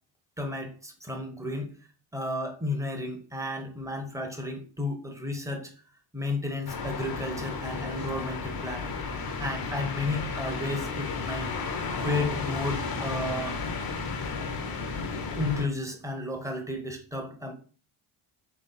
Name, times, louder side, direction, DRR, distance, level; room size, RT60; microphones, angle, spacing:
voice 1, 0.4-1.7 2.1-5.7 6.1-8.9 9.4-11.5 12.0-13.6 15.4-17.5, left 2 dB, 5° right, 3 dB, 1.2 m, -32 dB
sound 1, 6.7-15.7, left 4 dB, 50° left, 1.1 m, -33 dB
3.5 x 2.9 x 4.4 m, 0.40 s
supercardioid pair, 65°, 48 cm